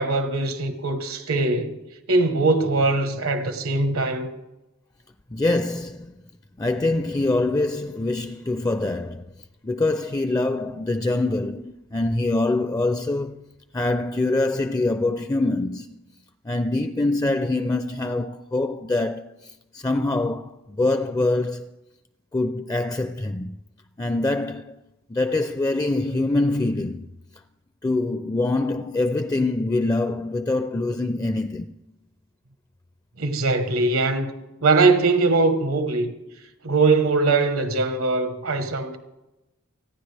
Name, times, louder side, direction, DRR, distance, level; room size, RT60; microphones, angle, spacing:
voice 1, 0.0-1.8 2.1-4.3 33.2-34.4 34.6-36.1 36.6-39.0, right 3 dB, 80° right, 1.2 m, -21 dB
voice 2, 5.3-6.1 6.6-9.3 9.6-13.4 13.7-16.0 16.4-21.7 22.3-23.6 24.0-24.8 25.1-27.1 27.8-31.7, left 2 dB, 15° left, 0.4 m, -24 dB
29.0 x 10.0 x 3.4 m
head